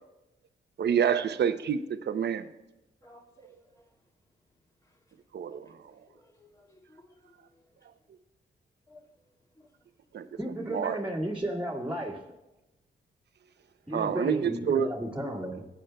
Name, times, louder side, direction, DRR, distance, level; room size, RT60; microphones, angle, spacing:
voice 1, 0.8-1.8 2.0-2.5 5.3-5.7 10.1-11.0 13.9-14.9, right 8 dB, 65° right, 0.6 m, -28 dB
voice 2, 3.0-3.8 5.5-7.3 8.9-9.1 9.6-9.7, left 1 dB, 20° left, 2.1 m, -58 dB
voice 3, 10.3-12.2 13.9-15.7, right 1 dB, 5° right, 1.8 m, -33 dB
17.5 x 8.8 x 2.3 m
cardioid pair, 60°, 19 cm